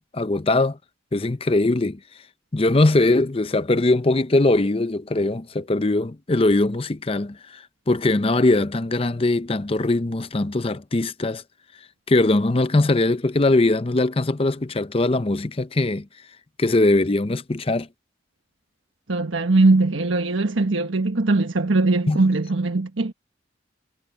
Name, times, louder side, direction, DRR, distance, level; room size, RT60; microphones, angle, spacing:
voice 1, 0.1-0.8 1.1-2.0 2.5-11.4 12.1-16.1 16.6-17.9 22.1-22.2, left 2 dB, 30° left, 0.6 m, -21 dB
voice 2, 19.1-23.1, right 2 dB, 85° right, 1.3 m, -20 dB
head